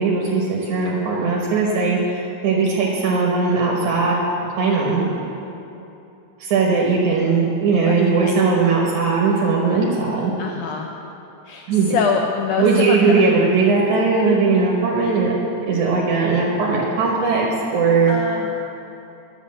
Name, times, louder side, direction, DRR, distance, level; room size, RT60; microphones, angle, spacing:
voice 1, 0.0-4.2 4.6-5.0 6.4-10.3 11.7-11.9 12.6-15.3 15.7-17.5 17.7-18.1, right 4 dB, 65° right, -3 dB, 2.2 m, -19 dB
voice 2, 7.7-8.4 10.4-10.9 11.5-13.1 18.1-18.6, left 6 dB, 85° left, 2 dB, 1.7 m, -25 dB
11.0 x 7.7 x 7.4 m, 2.8 s
omnidirectional pair, 4.3 m